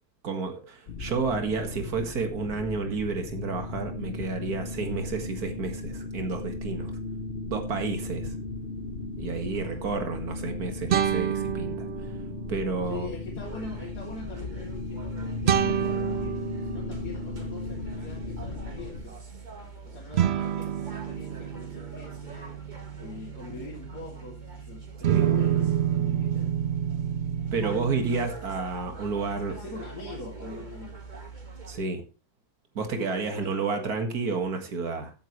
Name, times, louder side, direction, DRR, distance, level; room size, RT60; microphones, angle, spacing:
voice 1, 0.2-6.9 7.5-8.4 9.2-12.1 12.5-13.1 25.1-25.3 27.5-29.5 31.7-32.0 32.7-35.1, right 4 dB, 70° right, 2.4 m, -31 dB
sound 1, 0.9-19.0, left 3 dB, 45° left, 1.1 m, -36 dB
sound 2, 8.9-9.1 10.9-12.6 15.5-17.8 20.1-24.5 25.0-28.3, right 10 dB, 55° right, 0.8 m, -28 dB
voice 2, 12.9-19.2 19.8-26.5 29.5-31.0 32.8-33.8, left 4 dB, 80° left, 3.6 m, -43 dB
sound 3, 13.4-31.8, right 4 dB, 30° right, 1.8 m, -44 dB
15.5 x 8.8 x 3.2 m
omnidirectional pair, 1.7 m